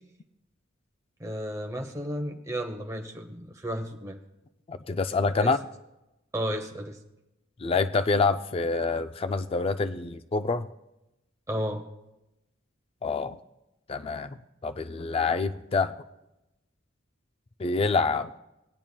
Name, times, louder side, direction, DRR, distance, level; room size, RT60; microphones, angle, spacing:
voice 1, 1.2-4.2 5.4-5.5 6.3-7.0 11.5-11.8, equal, 15° right, 3 dB, 0.9 m, -33 dB
voice 2, 4.7-5.6 7.6-10.7 13.0-13.4 13.9-15.9 17.6-18.3, left 4 dB, 25° left, 10 dB, 0.3 m, -27 dB
19.5 x 8.7 x 2.2 m, 0.93 s
head